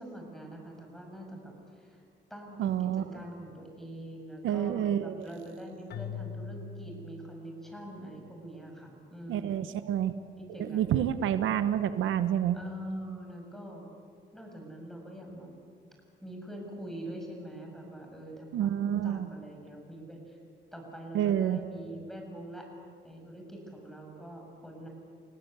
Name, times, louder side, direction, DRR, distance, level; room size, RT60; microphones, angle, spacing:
voice 1, 0.0-2.0 2.3-9.6 10.4-11.0 12.5-13.9 14.3-15.5 16.2-20.4 20.7-22.7 23.0-24.9, right 1 dB, ahead, 1 dB, 7.9 m, -44 dB
voice 2, 2.6-3.0 4.4-5.2 9.3-10.1 10.6-12.6 18.5-19.3 21.1-21.6, right 10 dB, 85° right, 11 dB, 1.1 m, -28 dB
Keyboard (musical), 5.9-8.2, left 6 dB, 55° left, 1.2 m, -42 dB
30.0 x 18.0 x 8.3 m, 2.2 s
cardioid pair, 90°, 20 cm